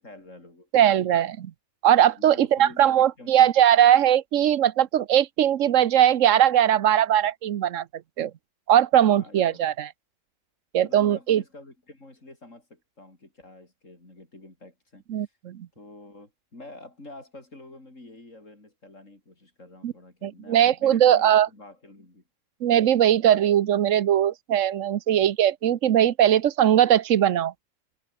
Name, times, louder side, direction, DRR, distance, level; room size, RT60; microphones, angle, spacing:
voice 1, 0.0-0.7 2.2-3.5 9.1-9.7 10.8-15.3 15.8-22.2, left 2 dB, 90° left, 6.2 m, -47 dB
voice 2, 0.7-1.5 1.8-7.9 8.2-8.3 8.7-9.9 10.7-11.4 15.1-15.7 19.8-19.9 20.2-21.5 22.6-27.5, right 10 dB, 85° right, 1.2 m, -20 dB
omnidirectional pair, 1.3 m